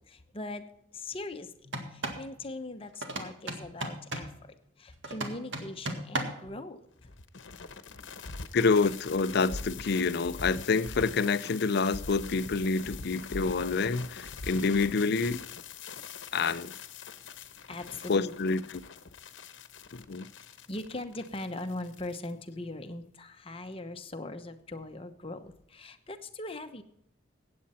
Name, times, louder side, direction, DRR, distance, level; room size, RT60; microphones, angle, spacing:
voice 1, 0.1-0.6 0.9-1.5 1.9-4.3 4.8-6.8 17.7-18.3 20.7-26.8, left 2 dB, 30° left, 1.0 m, -40 dB
sound 1, 1.6-2.3 3.0-4.4 5.0-6.5, right 2 dB, 70° right, 1.9 m, -36 dB
sound 2, 7.0-22.3, left 4 dB, 70° left, 1.0 m, -43 dB
voice 2, 8.5-15.4 16.3-16.7 18.1-18.8 19.9-20.2, left 4 dB, 55° left, 0.5 m, -27 dB
16.0 x 8.7 x 4.3 m
head